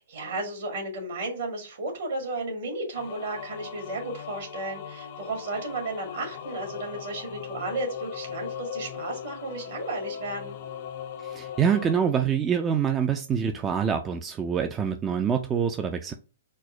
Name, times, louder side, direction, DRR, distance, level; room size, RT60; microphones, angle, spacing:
voice 1, 0.1-10.6, right 2 dB, 65° right, 1.8 m, -33 dB
sound 1, 2.9-12.0, left 8 dB, 55° left, 0.7 m, -39 dB
voice 2, 11.2-16.1, right 7 dB, 20° right, 0.4 m, -25 dB
4.3 x 2.1 x 4.3 m
hypercardioid pair, 115°, 0 cm